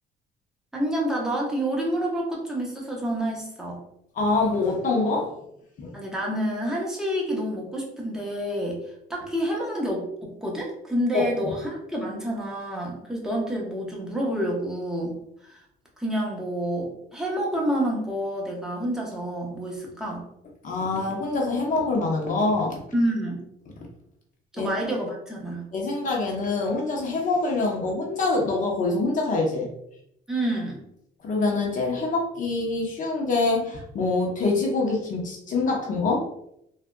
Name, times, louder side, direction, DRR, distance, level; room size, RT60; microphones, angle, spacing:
voice 1, 0.7-3.8 5.9-8.8 9.1-15.6 16.0-20.2 22.9-23.4 24.6-25.7 30.3-30.8, right 1 dB, 5° right, -3 dB, 0.9 m, -28 dB
voice 2, 4.1-5.4 5.8-5.9 11.1-11.5 20.6-22.8 23.8-23.9 24.6-24.7 25.7-29.7 31.2-36.3, left 3 dB, 50° left, 0 dB, 0.8 m, -25 dB
3.4 x 2.5 x 2.2 m, 0.75 s
cardioid pair, 110°, 17 cm